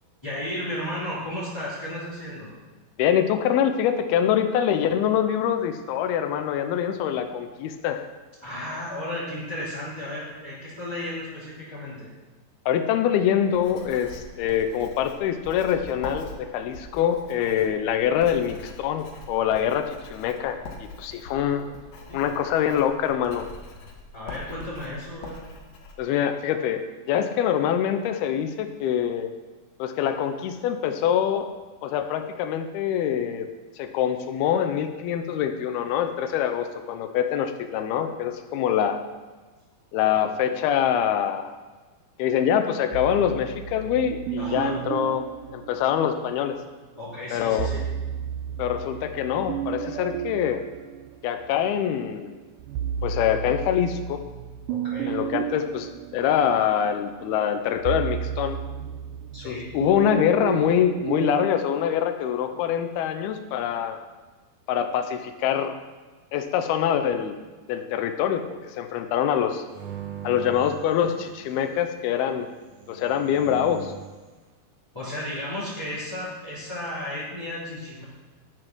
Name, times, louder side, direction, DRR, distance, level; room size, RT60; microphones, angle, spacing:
voice 1, 0.2-2.5 8.4-12.1 22.0-22.5 24.1-25.4 44.4-44.8 47.0-47.8 54.7-55.1 59.3-59.7 74.9-78.0, left 1 dB, 10° left, -12 dB, 2.5 m, -34 dB
voice 2, 3.0-8.1 12.7-21.6 22.1-23.5 26.0-29.3 29.8-31.5 31.8-33.5 33.8-39.0 39.9-41.5 42.2-46.6 47.3-47.7 48.6-50.6 51.2-52.4 53.0-54.2 55.1-58.6 59.4-64.0 64.7-65.8 66.3-67.4 67.7-69.6 70.2-72.5 72.9-73.9, left 9 dB, 90° left, 7 dB, 2.7 m, -25 dB
Writing, 13.5-25.9, left 3 dB, 60° left, 2.2 m, -43 dB
sound 1, 42.9-46.4 47.4-51.8 52.3-61.5, right 9 dB, 90° right, 1.9 m, -33 dB
sound 2, 69.7-71.7 72.7-74.2, right 9 dB, 60° right, 1.7 m, -40 dB
11.5 x 7.6 x 6.1 m, 1.3 s
omnidirectional pair, 4.3 m